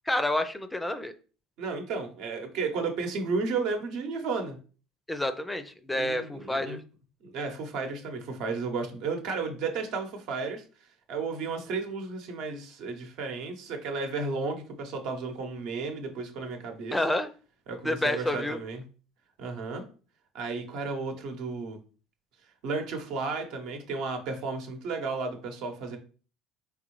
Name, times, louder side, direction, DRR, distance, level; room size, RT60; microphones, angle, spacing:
voice 1, 0.1-1.1 5.1-6.8 16.9-17.3 17.8-18.6, left 1 dB, 10° left, 10 dB, 0.5 m, -29 dB
voice 2, 1.6-4.6 5.9-6.8 7.2-10.6 11.1-17.0 17.7-18.8 19.4-19.8 20.3-21.8 22.6-26.0, right 4 dB, 65° right, 5 dB, 0.9 m, -33 dB
3.8 x 3.5 x 3.1 m, 0.37 s
hypercardioid pair, 65°, 0 cm